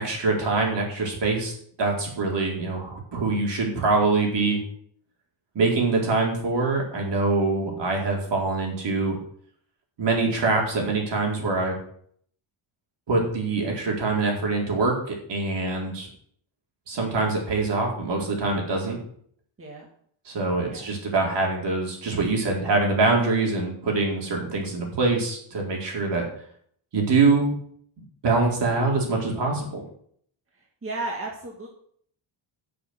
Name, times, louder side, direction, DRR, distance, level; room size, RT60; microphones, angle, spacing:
voice 1, 0.0-1.5 1.8-4.6 5.5-9.2 10.0-11.8 13.1-16.1 16.9-19.0 20.3-26.2 26.9-27.5 28.2-29.8, right 3 dB, 55° right, -1 dB, 4.5 m, -24 dB
voice 2, 30.8-31.7, right 2 dB, 25° right, 0 dB, 2.0 m, -33 dB
11.0 x 6.9 x 8.2 m, 0.62 s
wide cardioid pair, 165°, 49 cm